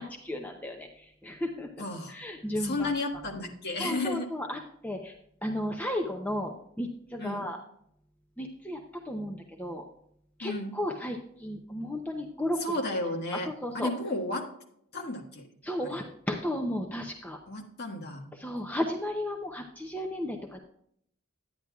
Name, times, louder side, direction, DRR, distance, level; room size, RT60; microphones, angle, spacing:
voice 1, 0.0-1.7 2.1-2.9 3.8-5.2 5.4-7.6 8.4-9.8 10.4-12.6 13.5-13.9 15.6-17.4 18.4-20.6, left 1 dB, 5° left, 2 dB, 0.6 m, -34 dB
voice 2, 1.8-2.1 2.6-4.3 7.2-7.5 10.4-10.7 12.6-13.5 13.7-14.5 14.9-15.5 15.8-15.9 17.5-18.3, left 2 dB, 45° left, 1 dB, 1.5 m, -33 dB
10.5 x 9.4 x 2.4 m, 0.70 s
head